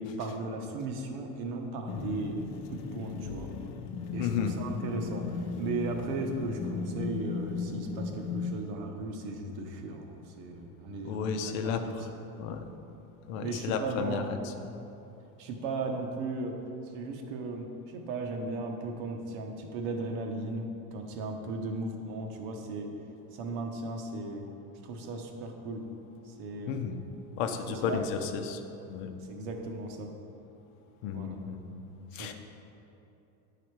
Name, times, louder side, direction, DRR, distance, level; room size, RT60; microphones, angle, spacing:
voice 1, 0.0-2.4 2.7-3.5 4.1-12.1 13.4-14.3 15.4-16.6 16.9-22.9 23.3-24.5 24.8-25.9 26.2-26.8 27.7-28.1 29.2-30.1 31.1-31.4 32.1-32.3, right 2 dB, 65° right, 4 dB, 1.0 m, -36 dB
sound 1, 1.9-8.6, left 5 dB, 40° left, 0.4 m, -36 dB
voice 2, 4.2-4.6 11.0-12.0 12.4-12.7 13.3-14.5 26.7-27.0 27.4-28.6 28.9-29.1 31.0-31.7 32.1-32.3, left 7 dB, 70° left, 6 dB, 0.8 m, -33 dB
8.8 x 4.9 x 4.7 m, 2.9 s
cardioid pair, 165°, 40 cm